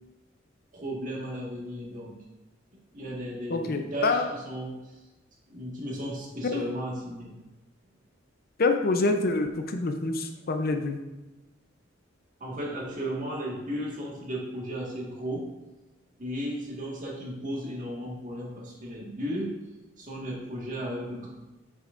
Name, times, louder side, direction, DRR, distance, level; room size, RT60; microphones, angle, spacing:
voice 1, 0.7-2.2 2.9-4.9 5.5-7.3 12.4-15.5 16.2-19.6 20.0-21.3, equal, 45° right, -3 dB, 1.7 m, -35 dB
voice 2, 3.5-4.3 6.5-6.7 8.6-11.0, left 3 dB, 50° left, 5 dB, 0.6 m, -26 dB
7.7 x 6.3 x 2.5 m, 1.1 s
head